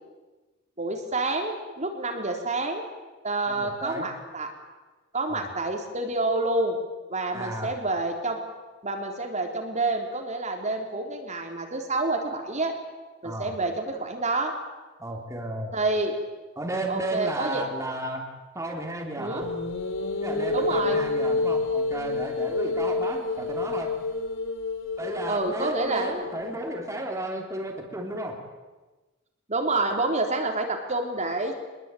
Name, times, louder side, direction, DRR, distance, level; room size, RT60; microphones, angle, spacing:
voice 1, 0.8-2.8 3.2-4.5 5.1-6.8 7.1-8.4 8.8-12.7 13.2-14.5 15.7-16.2 16.9-17.6 19.2-19.4 20.5-21.0 25.3-26.3 29.5-31.5, right 2 dB, 35° right, 3 dB, 3.6 m, -28 dB
voice 2, 3.5-4.1 5.3-5.5 7.3-7.7 13.2-13.5 15.0-15.7 16.5-18.2 18.5-19.5 20.2-23.9 25.0-28.4, right 1 dB, 15° right, 0 dB, 3.4 m, -33 dB
sound 1, 19.4-26.8, left 3 dB, 70° left, 2.8 m, -29 dB
24.5 x 21.5 x 9.2 m, 1.2 s
head